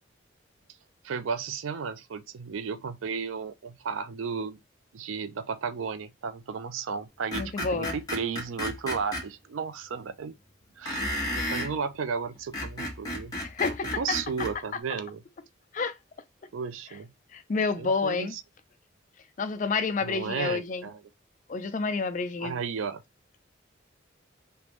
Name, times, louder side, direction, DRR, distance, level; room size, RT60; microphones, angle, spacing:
voice 1, 1.0-4.6 4.9-10.4 10.8-11.1 11.4-13.4 13.7-15.2 16.5-17.1 17.8-18.4 20.0-21.0 22.4-23.0, right 5 dB, 90° right, 0.4 m, -34 dB
voice 2, 7.3-7.9 13.4-14.2 15.7-16.0 17.3-18.3 19.4-20.9 21.5-22.5, left 4 dB, 40° left, 0.4 m, -29 dB
Screech, 7.3-9.2 10.8-11.7 12.4-14.5, left 1 dB, 20° left, 1.3 m, -32 dB
3.3 x 2.5 x 3.0 m
head